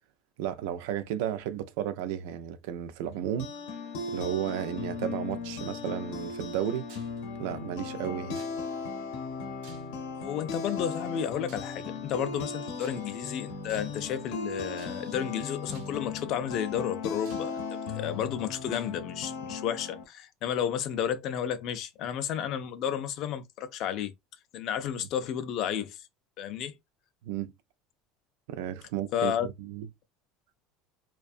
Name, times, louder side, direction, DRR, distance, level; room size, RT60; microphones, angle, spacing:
voice 1, 0.4-3.5 4.1-6.9 7.4-8.4 27.2-27.5 28.5-29.9, right 11 dB, 70° right, 0.3 m, -33 dB
sound 1, 3.1-20.0, left 4 dB, 70° left, 0.7 m, -37 dB
sound 2, 6.9-7.2 8.4-8.9 9.6-10.2 11.5-11.8 12.8-13.3 13.7-14.1 14.8-15.2 15.7-16.1 16.7-16.8 17.3-17.9 18.7-18.9, right 6 dB, 90° right, 0.8 m, -54 dB
voice 2, 10.2-17.6 17.9-24.1 24.5-26.0 26.4-26.8 29.1-29.5, left 9 dB, 40° left, 0.3 m, -32 dB
2.4 x 2.2 x 2.5 m
cardioid pair, 175°, 0 cm